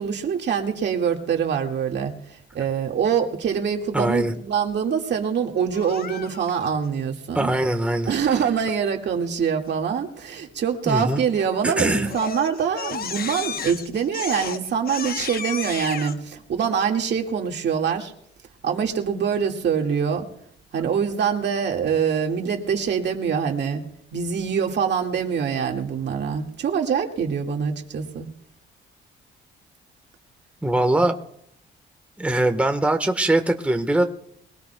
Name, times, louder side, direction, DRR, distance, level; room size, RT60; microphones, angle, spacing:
voice 1, 0.0-2.1 2.5-7.5 8.1-18.1 18.6-20.2 20.7-23.8 24.1-28.3 31.0-31.1, right 7 dB, 60° right, 2 dB, 2.0 m, -24 dB
voice 2, 3.9-4.3 7.3-8.1 10.9-11.2 11.6-12.1 30.6-31.2 32.2-34.0, right 1 dB, 5° right, 5 dB, 1.3 m, -21 dB
Crying sobbing, 5.7-6.7 11.3-11.7 12.0-16.1, left 6 dB, 50° left, 1.0 m, -33 dB
22.5 x 18.0 x 2.3 m, 0.71 s
cardioid pair, 90°, 20 cm